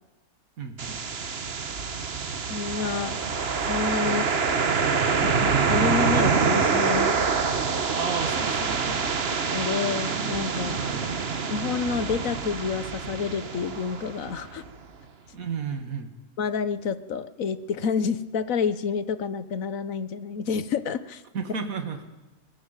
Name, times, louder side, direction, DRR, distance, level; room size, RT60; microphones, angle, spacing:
voice 1, 0.6-1.0 4.1-4.2 8.0-9.0 10.7-11.1 15.3-16.1 21.3-22.1, right 5 dB, 65° right, 6 dB, 2.3 m, -33 dB
sound 1, 0.8-14.7, right 5 dB, 45° right, 1.3 m, -26 dB
voice 2, 2.5-3.2 3.7-4.2 5.2-7.2 9.5-10.8 11.5-14.6 16.4-21.2, left 6 dB, 65° left, 13 dB, 1.4 m, -29 dB
21.0 x 16.0 x 9.0 m, 1.1 s
omnidirectional pair, 1.6 m